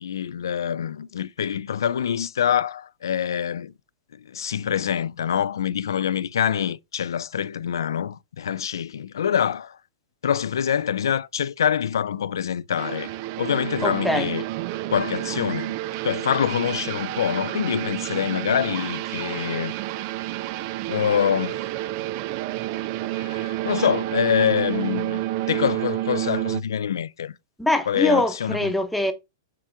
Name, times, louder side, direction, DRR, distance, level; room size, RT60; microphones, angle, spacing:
voice 1, 0.0-3.7 4.1-9.8 10.2-13.1 13.4-14.4 14.9-15.8 16.0-19.8 20.9-21.6 23.1-25.2 25.5-27.3 27.9-28.6, left 8 dB, 80° left, 0.4 m, -25 dB
sound 1, 12.8-26.6, right 15 dB, 45° right, 0.4 m, -29 dB
voice 2, 13.8-14.3 27.6-29.1, left 1 dB, ahead, 1.0 m, -23 dB
7.5 x 3.6 x 4.7 m
hypercardioid pair, 125°, 2 cm